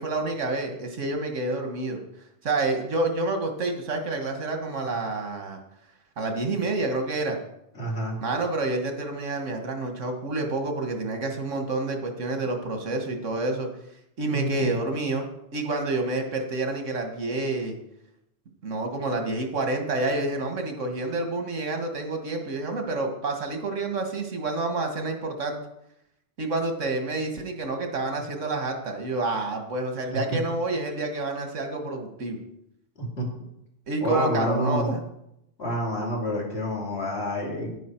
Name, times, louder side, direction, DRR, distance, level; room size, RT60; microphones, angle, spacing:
voice 1, 0.0-2.0 2.4-5.6 6.2-7.4 8.2-13.7 14.2-15.3 15.5-17.8 18.6-25.6 26.4-32.4 33.9-35.0, right 2 dB, 90° right, 4 dB, 1.9 m, -28 dB
voice 2, 7.8-8.2 14.3-14.8 30.1-30.4 33.0-33.3 34.0-34.9 35.6-37.7, equal, 60° left, -1 dB, 2.8 m, -28 dB
10.5 x 9.3 x 4.5 m, 0.81 s
omnidirectional pair, 1.2 m